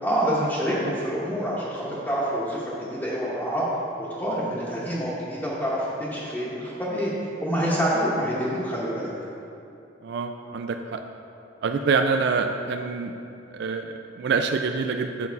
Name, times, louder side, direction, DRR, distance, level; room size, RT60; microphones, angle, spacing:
voice 1, 0.0-3.7 4.0-7.1 7.4-9.1, equal, 10° left, -9 dB, 1.0 m, -27 dB
voice 2, 10.0-11.0 11.6-13.1 13.5-15.3, right 4 dB, 65° right, 6 dB, 0.3 m, -26 dB
7.3 x 5.5 x 4.6 m, 2.7 s
head